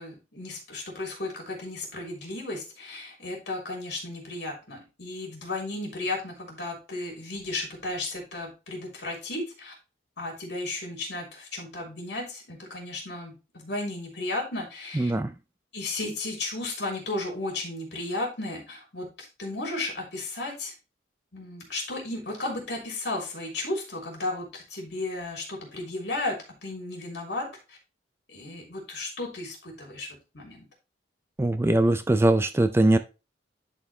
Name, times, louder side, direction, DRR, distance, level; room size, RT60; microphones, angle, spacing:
voice 1, 0.0-9.7 10.2-15.1 15.7-20.7 21.3-27.8 28.3-30.1 30.3-30.7, left 2 dB, 65° left, 0 dB, 3.2 m, -34 dB
voice 2, 15.0-15.3 31.4-33.0, right 1 dB, 15° right, 10 dB, 0.4 m, -21 dB
11.0 x 4.3 x 3.1 m, 0.29 s
head